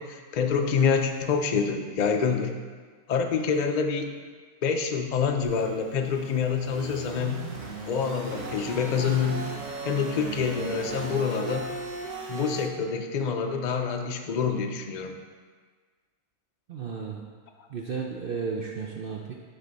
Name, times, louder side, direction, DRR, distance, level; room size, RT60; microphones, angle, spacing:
voice 1, 0.0-2.6 3.1-4.1 4.6-7.5 7.9-9.5 9.8-11.7 12.3-15.2, left 6 dB, 85° left, 4 dB, 0.4 m, -27 dB
sound 1, 5.4-12.7, right 2 dB, 80° right, 1.6 m, -37 dB
voice 2, 16.7-17.2 17.7-19.3, right 5 dB, 65° right, 0 dB, 0.5 m, -33 dB
10.0 x 4.2 x 4.0 m, 1.5 s
omnidirectional pair, 1.6 m